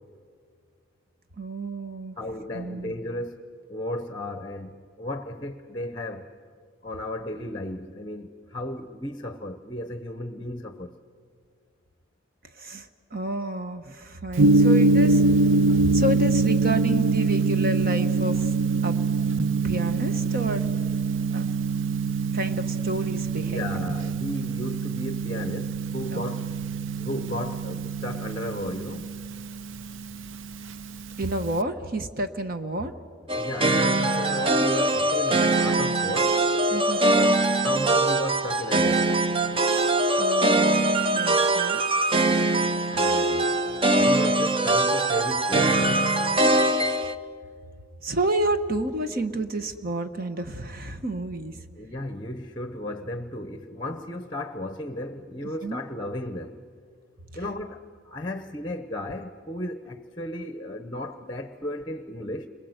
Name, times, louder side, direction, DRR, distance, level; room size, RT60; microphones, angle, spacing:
voice 1, 1.4-2.2 2.5-2.9 12.5-15.3 15.8-18.5 18.8-19.0 19.6-20.7 21.3-21.5 22.3-23.8 26.1-26.2 31.2-32.9 36.7-37.4 39.6-41.8 48.0-51.6 55.6-55.8, right 1 dB, 45° right, 1.1 m, -30 dB
voice 2, 2.2-6.3 6.8-11.0 23.4-26.5 27.0-29.1 33.3-36.4 37.1-39.1 42.9-46.1 51.8-56.6 57.3-62.5, left 1 dB, 20° left, 0.9 m, -34 dB
Gong, 14.4-31.6, right 3 dB, 65° right, 0.6 m, -24 dB
sound 1, 33.3-47.1, right 2 dB, 25° right, 0.7 m, -22 dB
29.5 x 22.0 x 8.0 m
head